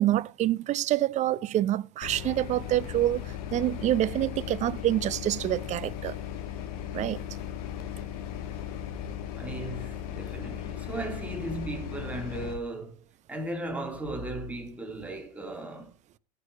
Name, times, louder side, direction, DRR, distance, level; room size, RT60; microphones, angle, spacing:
voice 1, 0.0-6.1 6.9-7.2, right 13 dB, 35° right, 0.7 m, -27 dB
sound 1, 2.0-12.6, left 10 dB, 65° left, 2.0 m, -37 dB
voice 2, 9.4-13.0 13.3-15.9, right 2 dB, 5° right, 3.2 m, -36 dB
14.5 x 6.7 x 5.0 m
hypercardioid pair, 105°, 20 cm